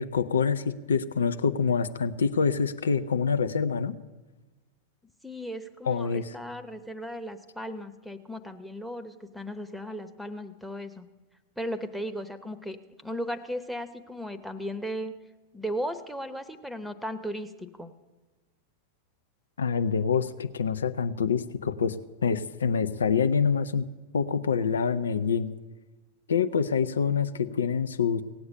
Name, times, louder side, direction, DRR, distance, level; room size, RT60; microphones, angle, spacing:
voice 1, 0.0-4.0 5.8-6.2 19.6-22.0 22.2-23.9 24.1-25.5 26.3-28.2, left 6 dB, 70° left, 10 dB, 0.6 m, -26 dB
voice 2, 5.2-11.1 11.6-12.8 13.0-15.1 15.5-17.9, equal, ahead, 12 dB, 1.0 m, -36 dB
17.5 x 8.0 x 8.8 m, 1.2 s
figure-of-eight pair, 90°, 0 cm